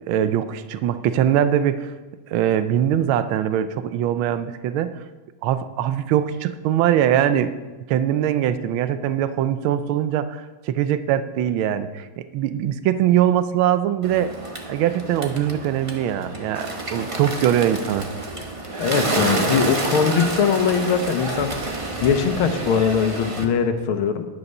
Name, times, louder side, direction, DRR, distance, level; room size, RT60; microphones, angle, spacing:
voice 1, 0.1-1.9 2.3-4.9 5.4-7.5 7.9-12.1 12.3-14.3 14.7-18.1, right 10 dB, 75° right, 12 dB, 1.4 m, -22 dB
Bird, 14.0-23.4, right 2 dB, 25° right, 0.6 m, -28 dB
voice 2, 18.8-21.5 22.0-24.3, left 6 dB, 75° left, 7 dB, 1.8 m, -21 dB
11.0 x 9.5 x 5.4 m, 1.2 s
omnidirectional pair, 2.4 m